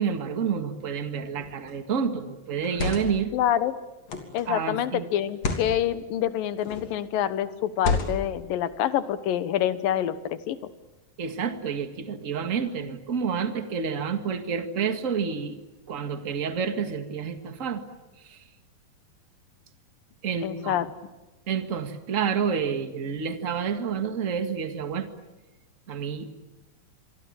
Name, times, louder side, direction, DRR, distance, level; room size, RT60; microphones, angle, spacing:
voice 1, 0.0-3.3 4.5-5.1 11.2-15.6 15.9-17.8 18.3-18.4 20.2-20.8 21.5-25.1 25.9-26.3, right 6 dB, 30° right, 8 dB, 1.5 m, -29 dB
sound 1, 1.4-1.7 2.5-3.3 4.1-4.4 5.3-5.7 6.6-7.0 7.8-8.4, left 3 dB, 50° left, 4.1 m, -30 dB
voice 2, 3.3-3.7 4.3-10.6 20.4-20.9, left 11 dB, 80° left, 13 dB, 2.9 m, -26 dB
27.0 x 24.0 x 8.8 m, 1.1 s
omnidirectional pair, 4.0 m